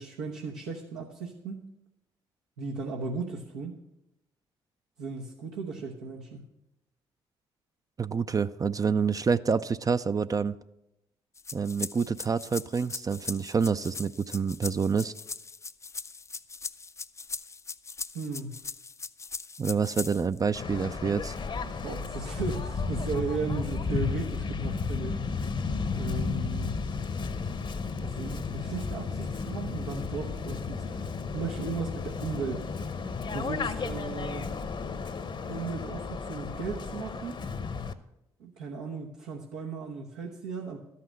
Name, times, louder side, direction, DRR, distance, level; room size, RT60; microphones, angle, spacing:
voice 1, 0.0-1.6 2.6-3.8 5.0-6.5 18.1-18.6 21.7-25.2 25.9-26.9 28.0-31.1 31.3-32.7 33.3-34.5 35.5-37.4 38.4-40.8, right 4 dB, 85° right, -2 dB, 1.0 m, -36 dB
voice 2, 8.0-10.6 11.5-15.1 19.6-21.4, right 5 dB, 30° right, 12 dB, 0.4 m, -27 dB
sound 1, 11.4-20.4, left 4 dB, 25° left, 0.4 m, -39 dB
Waves surf, 20.5-37.9, left 4 dB, 45° left, 0.8 m, -33 dB
12.5 x 5.8 x 7.5 m, 0.89 s
hypercardioid pair, 50°, 12 cm